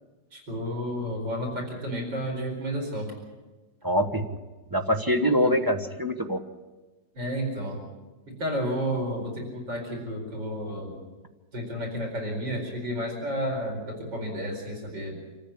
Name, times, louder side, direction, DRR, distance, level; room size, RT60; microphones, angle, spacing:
voice 1, 0.3-3.1 5.2-5.5 7.1-7.8 8.3-11.0 11.5-15.2, equal, 85° right, 0 dB, 5.1 m, -31 dB
voice 2, 3.8-4.3 4.7-6.4, equal, 15° right, 5 dB, 1.1 m, -24 dB
26.0 x 14.5 x 8.7 m, 1.3 s
omnidirectional pair, 1.9 m